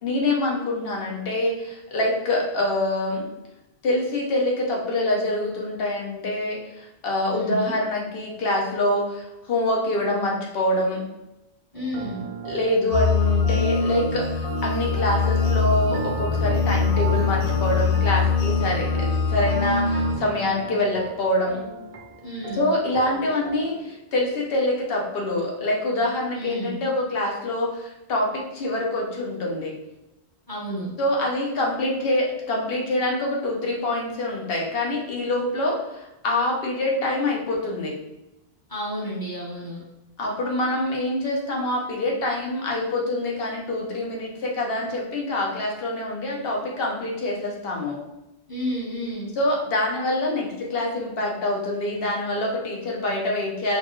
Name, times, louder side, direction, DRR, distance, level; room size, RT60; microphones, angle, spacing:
voice 1, 0.0-3.2 3.8-11.0 12.5-21.6 22.6-29.7 31.0-37.9 40.2-48.0 49.4-53.8, left 1 dB, 60° left, -1 dB, 1.0 m, -25 dB
voice 2, 7.3-7.7 11.7-12.3 21.5-21.7 22.2-22.7 26.3-26.8 30.5-30.9 38.7-39.8 48.5-49.4, equal, 20° left, -7 dB, 1.2 m, -31 dB
sound 1, 11.7-23.8, right 5 dB, 60° right, 0.3 m, -37 dB
sound 2, 12.9-20.2, left 5 dB, 85° left, 1.0 m, -23 dB
4.3 x 2.4 x 3.0 m, 0.94 s
omnidirectional pair, 1.1 m